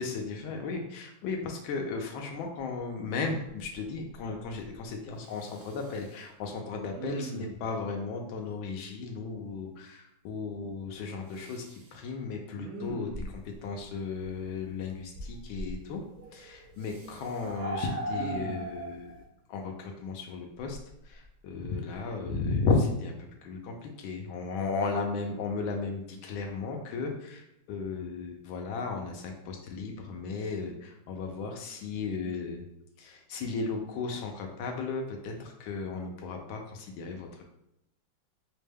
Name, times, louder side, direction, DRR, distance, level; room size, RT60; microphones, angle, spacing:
voice 1, 0.0-16.0 16.3-19.2 19.5-20.8 21.0-23.2 23.4-32.6 33.0-37.4, left 4 dB, 80° left, 2 dB, 1.4 m, -35 dB
Respiratory sounds, 2.8-2.9 3.3-3.8 4.1-4.8 5.2-6.2 6.9-7.7 11.3-11.9 12.5-13.6 15.1-15.7 16.8-17.5 18.0-18.8 20.6-21.5 21.9-22.1, right 2 dB, 80° right, 1.6 m, -42 dB
sound 1, 13.8-13.9 14.2-14.5 15.4-15.5 16.0-19.2, right 1 dB, 60° right, 0.7 m, -37 dB
5.1 x 2.1 x 3.4 m, 0.83 s
omnidirectional pair, 2.2 m